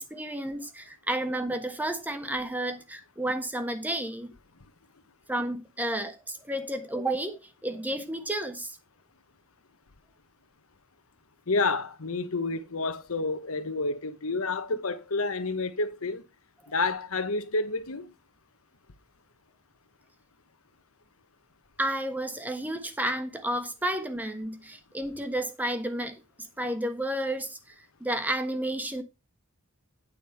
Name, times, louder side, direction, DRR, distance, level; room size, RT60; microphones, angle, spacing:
voice 1, 0.0-4.3 5.3-8.8 21.8-26.2 26.6-29.0, right 1 dB, 10° right, 1.3 m, -31 dB
voice 2, 11.5-16.2 16.7-18.1, left 3 dB, 80° left, 1.2 m, -29 dB
9.5 x 5.4 x 5.6 m
head